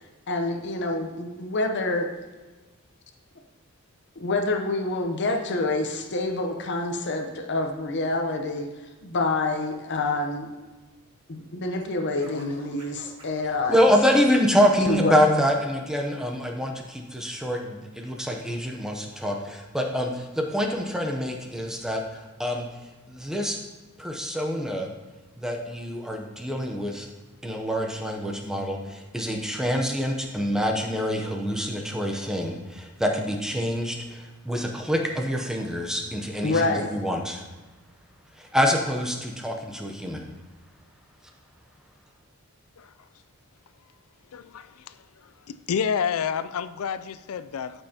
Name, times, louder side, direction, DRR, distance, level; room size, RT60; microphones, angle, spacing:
voice 1, 0.3-2.1 4.2-8.7 9.0-10.5 11.3-13.8 14.9-15.1 36.4-36.9, left 2 dB, 50° left, 4 dB, 0.8 m, -27 dB
voice 2, 12.2-12.8 42.8-42.9 44.3-45.0 45.2-45.3 45.7-47.8, left 7 dB, 70° left, 13 dB, 0.4 m, -30 dB
Scratching (performance technique), 12.2-15.0, right 2 dB, 25° right, 1.8 m, -49 dB
voice 3, 13.7-22.7 23.1-23.6 24.0-24.9 25.4-27.1 27.4-37.4 38.4-40.2, equal, 5° right, 1 dB, 0.7 m, -26 dB
12.5 x 5.5 x 2.9 m, 1.2 s
head